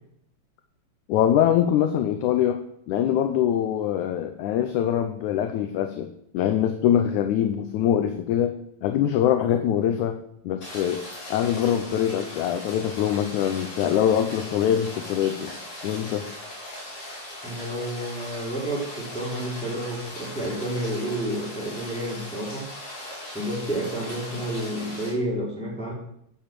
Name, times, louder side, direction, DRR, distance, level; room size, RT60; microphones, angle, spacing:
voice 1, 1.1-2.6 2.9-8.6 8.8-10.2 10.5-11.0 11.3-15.5 15.8-16.3, left 10 dB, 75° left, 7 dB, 2.0 m, -23 dB
Rain, 10.6-25.1, left 1 dB, 50° left, 6.3 m, -39 dB
voice 2, 17.4-22.7 23.3-25.9, right 1 dB, ahead, -4 dB, 2.9 m, -30 dB
9.9 x 7.0 x 7.6 m, 0.73 s
omnidirectional pair, 3.8 m